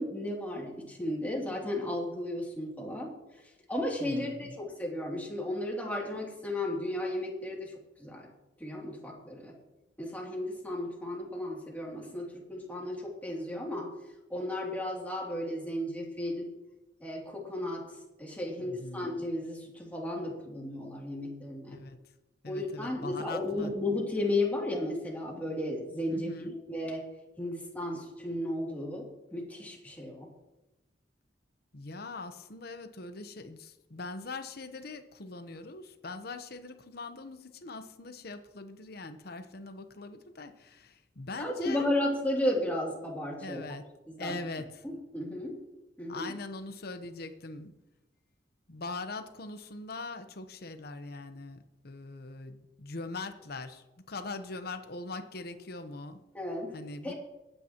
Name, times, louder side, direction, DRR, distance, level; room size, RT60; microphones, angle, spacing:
voice 1, 0.0-3.1 3.7-7.7 8.0-8.3 8.6-9.6 10.0-13.9 14.3-16.5 17.0-21.8 22.5-27.0 27.4-30.3 41.4-43.6 44.1-44.4 44.8-45.6 46.0-46.3 56.3-56.8 57.0-57.1, left 1 dB, 10° left, -3 dB, 2.8 m, -34 dB
voice 2, 4.0-4.5 18.6-19.2 21.7-22.0 22.4-23.7 26.1-26.5 31.7-41.9 43.4-43.8 44.2-44.8 46.1-47.7 48.7-56.2 56.7-57.1, left 3 dB, 60° left, 9 dB, 1.0 m, -42 dB
21.5 x 9.2 x 3.0 m, 1.0 s
head